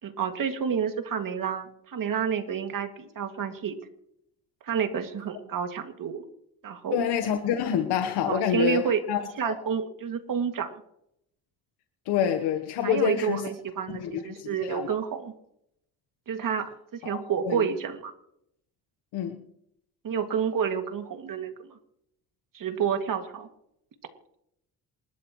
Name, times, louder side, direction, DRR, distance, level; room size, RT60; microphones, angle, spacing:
voice 1, 0.0-3.8 4.6-6.2 6.6-7.0 8.2-10.7 12.8-15.3 16.3-18.1 20.0-21.8 22.5-23.5, right 7 dB, 55° right, 5 dB, 2.3 m, -29 dB
voice 2, 6.9-9.6 12.1-13.5 13.9-14.9 17.0-17.2 17.4-17.7 19.1-19.4, left 9 dB, 90° left, 6 dB, 1.3 m, -27 dB
28.0 x 12.5 x 3.1 m, 0.76 s
cardioid pair, 85°, 38 cm